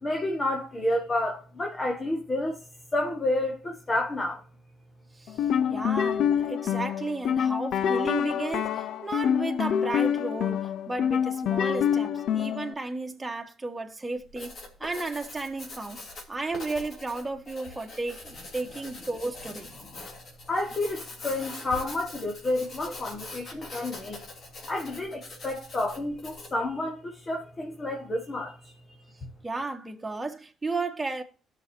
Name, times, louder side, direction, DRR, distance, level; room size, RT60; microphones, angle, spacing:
voice 1, 0.0-2.6 2.9-4.4 20.5-24.2 24.7-28.5, left 1 dB, 30° left, 1.8 m, -30 dB
voice 2, 5.1-14.5 14.8-19.7 29.4-31.2, right 3 dB, 15° right, 1.7 m, -34 dB
sound 1, 5.3-12.7, left 8 dB, 75° left, 0.6 m, -26 dB
Writing, 14.2-26.6, left 2 dB, 55° left, 3.0 m, -43 dB
18.0 x 6.5 x 2.8 m
cardioid pair, 90°, 0 cm